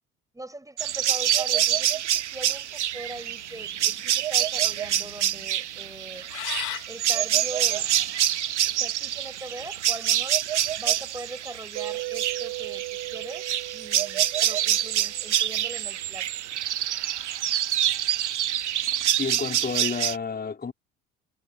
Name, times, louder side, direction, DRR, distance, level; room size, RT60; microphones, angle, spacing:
voice 1, 0.3-6.3 6.9-7.9 8.6-10.4 10.8-16.5 16.9-17.0, right 2 dB, 10° right, 8.0 m, -41 dB
sound 1, 0.8-20.2, right 11 dB, 80° right, 0.9 m, -26 dB
sound 2, 2.9-8.7, left 21 dB, 60° left, 2.7 m, -40 dB
Mallet percussion, 11.8-15.5, right 22 dB, 60° right, 3.9 m, -37 dB
voice 2, 19.2-20.7, left 5 dB, 25° left, 4.6 m, -30 dB
figure-of-eight pair, 55°, 34 cm